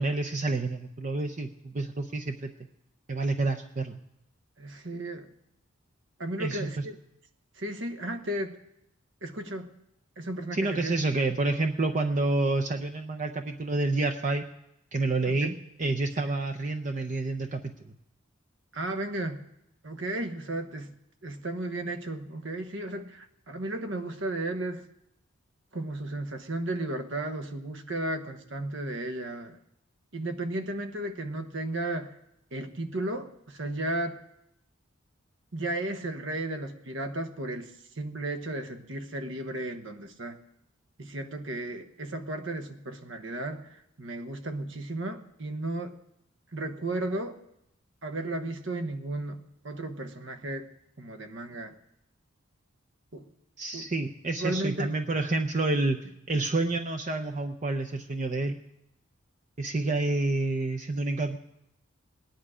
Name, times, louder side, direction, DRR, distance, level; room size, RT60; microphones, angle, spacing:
voice 1, 0.0-2.5 3.1-4.0 6.4-6.8 10.5-14.4 14.9-17.7 53.6-56.0 56.3-58.6 59.6-61.4, right 2 dB, 35° right, 4 dB, 0.6 m, -28 dB
voice 2, 4.6-5.3 6.2-7.0 7.6-8.6 9.2-9.7 10.2-10.9 15.2-15.5 16.2-16.4 18.7-19.4 19.8-20.9 21.2-24.9 25.7-29.6 30.1-32.2 32.5-34.2 35.5-37.7 38.0-40.4 41.0-45.9 46.5-47.4 48.0-50.7 51.0-51.7 53.1-53.3 53.7-53.9 54.4-54.9, right 1 dB, 65° right, 8 dB, 1.1 m, -34 dB
18.0 x 10.5 x 5.0 m, 0.82 s
head